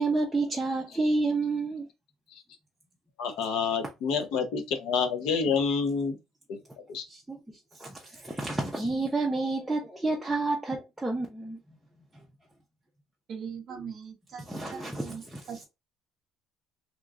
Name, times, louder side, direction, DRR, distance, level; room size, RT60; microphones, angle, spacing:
voice 1, 0.0-1.9 7.1-11.6 14.5-15.6, right 3 dB, 5° right, 0.5 m, -30 dB
voice 2, 3.2-6.2 6.9-7.0, left 5 dB, 80° left, 0.7 m, -28 dB
voice 3, 13.3-14.4 14.7-14.8 15.1-15.2, right 6 dB, 40° right, 0.9 m, -39 dB
3.0 x 2.3 x 3.6 m
cardioid pair, 165°, 0 cm